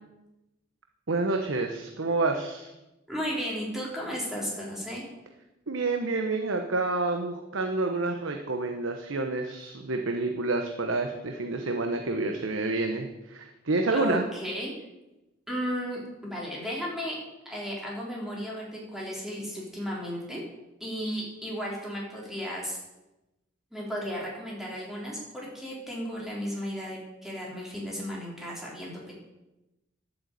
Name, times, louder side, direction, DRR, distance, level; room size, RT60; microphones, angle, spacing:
voice 1, 1.1-2.7 5.7-14.2, right 3 dB, 80° right, 4 dB, 1.0 m, -28 dB
voice 2, 3.1-5.0 13.9-14.8 15.5-17.2 17.4-20.4 20.8-22.8 23.7-29.1, equal, ahead, -4 dB, 4.0 m, -34 dB
11.0 x 8.3 x 8.2 m, 0.99 s
head